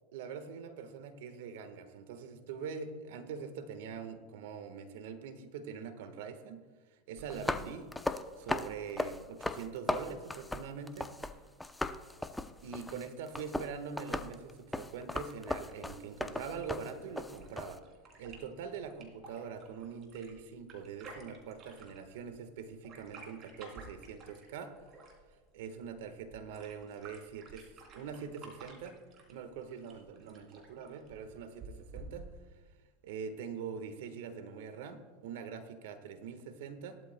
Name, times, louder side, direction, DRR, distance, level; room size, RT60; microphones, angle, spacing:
voice 1, 0.1-6.7 7.1-7.9 8.4-11.1 12.6-17.8 18.2-24.7 25.5-29.0 29.3-32.3 33.0-37.0, right 6 dB, 75° right, 9 dB, 1.4 m, -43 dB
sound 1, 7.2-11.3 11.6-17.8, left 2 dB, 5° left, 0.6 m, -37 dB
sound 2, 16.5-32.6, right 3 dB, 40° right, 3.1 m, -54 dB
17.5 x 12.5 x 2.2 m, 1.4 s
hypercardioid pair, 105°, 0 cm